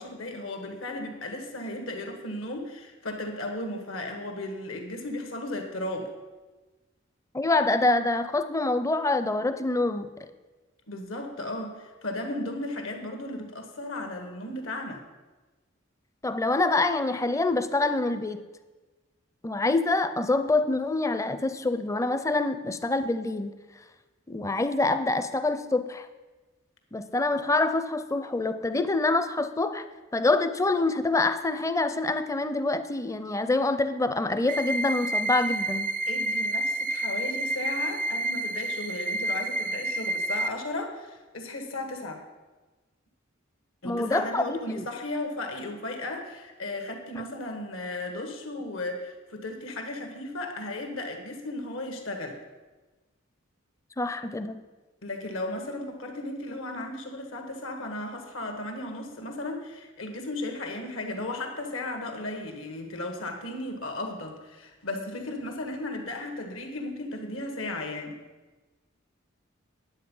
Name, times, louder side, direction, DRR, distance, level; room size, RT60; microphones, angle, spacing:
voice 1, 0.0-6.1 10.9-15.0 36.1-42.2 43.8-52.4 55.0-68.2, left 2 dB, 75° left, 4 dB, 1.6 m, -35 dB
voice 2, 7.3-10.1 16.2-18.4 19.4-23.5 24.3-26.1 26.9-29.8 30.1-35.9 43.8-44.9 54.0-54.6, left 2 dB, 15° left, 11 dB, 0.5 m, -26 dB
sound 1, 34.5-40.5, right 1 dB, 40° right, 0.4 m, -29 dB
10.0 x 8.1 x 5.5 m, 1.2 s
head